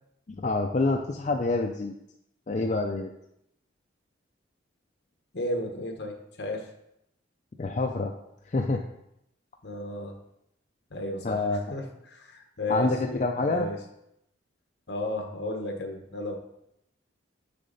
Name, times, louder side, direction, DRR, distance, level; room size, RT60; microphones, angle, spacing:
voice 1, 0.4-1.9 2.5-3.1 7.6-8.1 8.5-8.8 11.2-11.6 12.7-13.7, left 3 dB, 35° left, 2 dB, 0.4 m, -27 dB
voice 2, 5.3-6.7 9.6-10.2 10.9-11.4 11.7-13.8 14.9-16.4, left 1 dB, 60° left, 3 dB, 1.1 m, -33 dB
6.6 x 6.5 x 4.0 m, 0.80 s
head